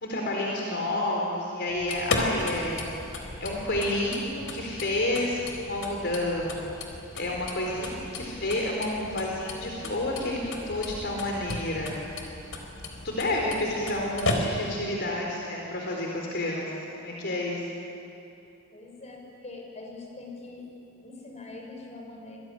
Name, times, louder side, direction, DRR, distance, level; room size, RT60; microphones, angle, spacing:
voice 1, 0.0-2.9 3.4-6.7 7.2-12.4 13.0-17.6, left 1 dB, 55° left, -1 dB, 4.1 m, -30 dB
sound 1, 1.7-14.9, left 2 dB, 75° left, 4.3 m, -35 dB
voice 2, 18.7-20.7 21.0-22.4, left 3 dB, 35° left, 1 dB, 5.9 m, -43 dB
27.5 x 21.5 x 10.0 m, 2.8 s
head